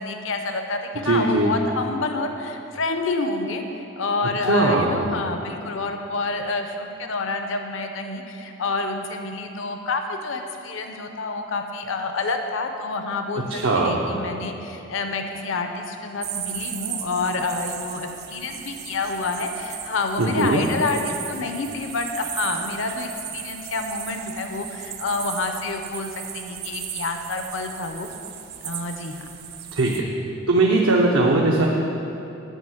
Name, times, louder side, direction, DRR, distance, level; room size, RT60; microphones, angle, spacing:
voice 1, 0.0-28.1 28.6-29.2, left 3 dB, 70° left, 5 dB, 0.6 m, -28 dB
voice 2, 1.0-1.5 4.5-5.0 13.5-14.2 20.2-20.6 29.8-30.1 30.5-31.7, right 2 dB, 85° right, -2 dB, 0.8 m, -20 dB
sound 1, 16.2-30.0, right 9 dB, 50° right, 0.6 m, -36 dB
9.1 x 5.7 x 7.6 m, 2.8 s
head